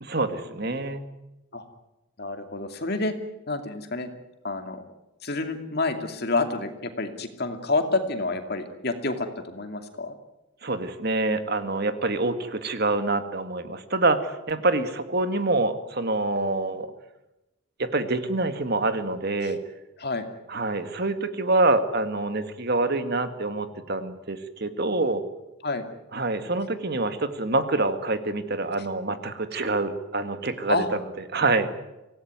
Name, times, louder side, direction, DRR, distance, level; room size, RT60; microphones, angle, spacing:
voice 1, 0.0-1.0 10.6-16.9 17.8-19.6 20.5-25.2 26.1-30.8 31.3-31.7, right 2 dB, 50° right, 9 dB, 1.9 m, -26 dB
voice 2, 2.2-3.1 3.5-4.1 4.4-4.8 5.2-10.2 19.4-19.5 20.0-20.3 25.6-25.9 30.7-30.9, left 3 dB, 50° left, 6 dB, 2.6 m, -28 dB
25.5 x 18.0 x 9.5 m, 0.98 s
head